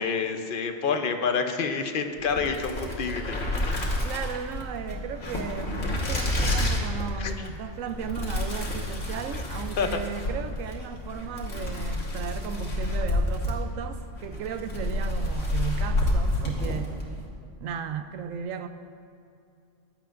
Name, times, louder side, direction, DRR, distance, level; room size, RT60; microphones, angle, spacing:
voice 1, 0.0-4.0 7.2-7.3 9.8-10.0, left 5 dB, 50° left, 6 dB, 0.7 m, -28 dB
sound 1, 2.2-17.1, left 1 dB, 65° left, 1.9 m, -29 dB
voice 2, 4.0-17.0 17.6-18.7, right 7 dB, 80° right, 9 dB, 1.0 m, -35 dB
14.5 x 10.0 x 2.5 m, 2.5 s
omnidirectional pair, 1.4 m